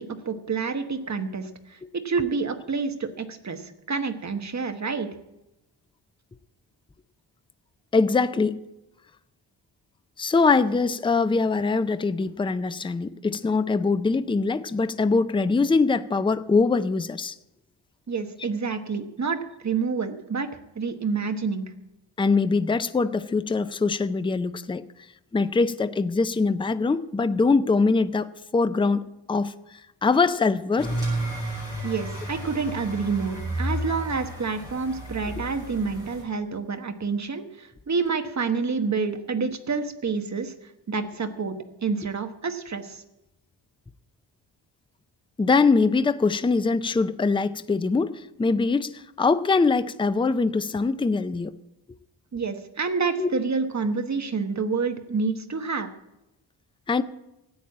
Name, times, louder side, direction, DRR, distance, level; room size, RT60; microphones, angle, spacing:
voice 1, 0.0-5.1 18.1-20.5 20.7-21.7 31.8-41.6 41.8-43.0 52.3-55.9, right 4 dB, 35° right, 7 dB, 1.2 m, -28 dB
voice 2, 7.9-8.6 10.2-17.3 22.2-24.8 25.3-29.0 29.3-30.9 45.4-51.5 53.2-53.3 56.9-57.0, left 4 dB, 10° left, 12 dB, 0.4 m, -23 dB
sound 1, 30.8-36.2, right 1 dB, 10° right, 7.0 m, -32 dB
13.5 x 8.9 x 8.5 m, 0.93 s
wide cardioid pair, 165°, 48 cm